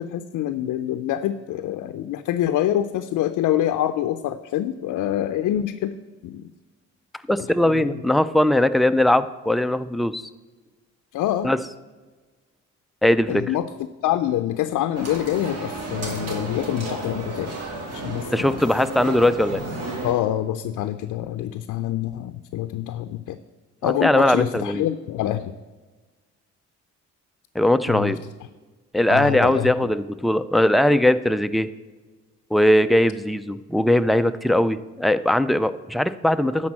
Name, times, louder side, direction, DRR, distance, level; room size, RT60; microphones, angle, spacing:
voice 1, 0.0-6.0 6.2-6.5 7.6-7.9 11.1-11.5 13.3-13.7 14.0-17.6 17.9-18.5 20.0-23.4 23.8-25.5 27.9-28.1 29.1-29.7, left 12 dB, 75° left, 9 dB, 0.5 m, -26 dB
voice 2, 7.3-10.3 11.4-11.6 13.0-13.4 18.3-19.6 23.8-24.9 27.6-28.2 28.9-31.7 32.5-36.7, left 1 dB, ahead, 10 dB, 0.3 m, -20 dB
sound 1, 14.9-20.1, right 2 dB, 55° right, 2.3 m, -32 dB
10.5 x 4.3 x 7.4 m, 1.3 s
cardioid pair, 90°, 30 cm